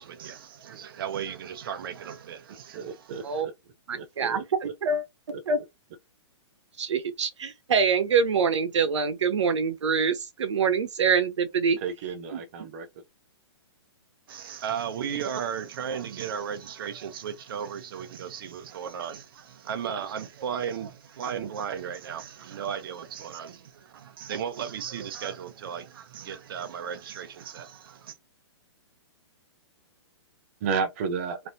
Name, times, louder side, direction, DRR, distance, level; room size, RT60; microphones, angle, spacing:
voice 1, 0.0-3.4 14.3-28.2, right 8 dB, 50° right, 0.8 m, -35 dB
voice 2, 2.7-3.5 3.9-4.7 5.3-5.4 11.8-12.9 30.6-31.4, right 5 dB, 30° right, 0.5 m, -32 dB
voice 3, 3.9-5.0 5.5-5.6 6.8-11.8 12.3-12.4, right 5 dB, 85° right, 1.0 m, -25 dB
3.1 x 2.7 x 2.6 m
hypercardioid pair, 165°, 15 cm